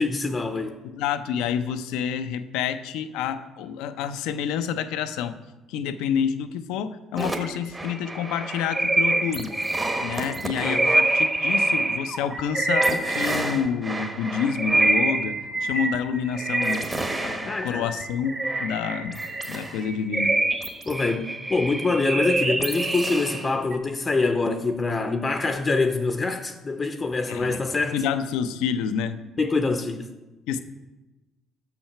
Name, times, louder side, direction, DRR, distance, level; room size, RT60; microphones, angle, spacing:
voice 1, 0.0-0.8 10.6-10.9 17.4-17.9 20.9-28.0 29.4-30.1, left 3 dB, 30° left, 0.6 m, -25 dB
voice 2, 0.9-5.4 5.7-9.5 10.0-16.9 17.2-18.3 18.6-19.2 19.5-20.4 27.3-27.6 27.9-29.2 30.5-30.6, left 7 dB, 75° left, 0.4 m, -28 dB
sound 1, 7.2-23.8, right 2 dB, 25° right, 1.1 m, -26 dB
6.4 x 5.8 x 5.6 m
hypercardioid pair, 60°, 0 cm